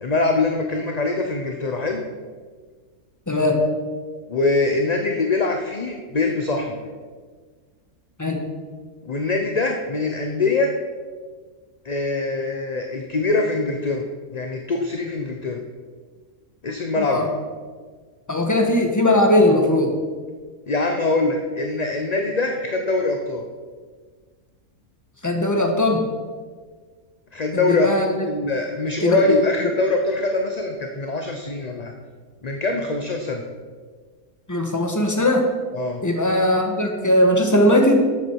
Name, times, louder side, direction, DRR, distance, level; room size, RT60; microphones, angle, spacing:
voice 1, 0.0-2.0 4.3-6.8 9.0-10.7 11.8-14.0 14.3-15.6 16.6-17.3 20.7-23.4 27.3-27.9 28.3-31.9 32.4-33.4 35.7-36.0, left 3 dB, 35° left, 3 dB, 0.8 m, -23 dB
voice 2, 3.3-3.6 8.2-8.4 16.9-17.2 18.3-19.9 25.2-26.0 27.5-28.1 29.0-29.2 34.5-35.4 36.0-38.0, left 1 dB, 15° left, 2 dB, 1.4 m, -19 dB
12.5 x 8.2 x 4.7 m, 1.5 s
omnidirectional pair, 1.5 m